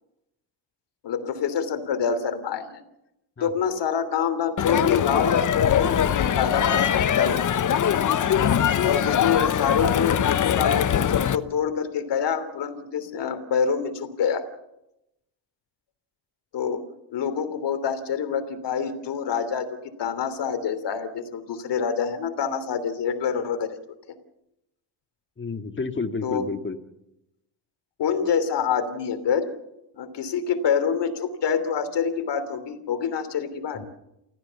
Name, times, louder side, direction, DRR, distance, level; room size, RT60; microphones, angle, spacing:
voice 1, 1.0-2.8 3.4-7.5 8.8-14.5 16.5-16.8 17.1-19.7 20.0-23.8 26.2-26.4 28.0-29.5 29.9-33.8, left 7 dB, 60° left, 10 dB, 3.2 m, -26 dB
Crowd, 4.6-11.4, left 9 dB, 40° left, 1.0 m, -22 dB
voice 2, 25.4-26.8 33.7-33.8, left 4 dB, 25° left, 7 dB, 1.9 m, -30 dB
29.0 x 14.5 x 7.1 m, 0.87 s
cardioid pair, 90°, 48 cm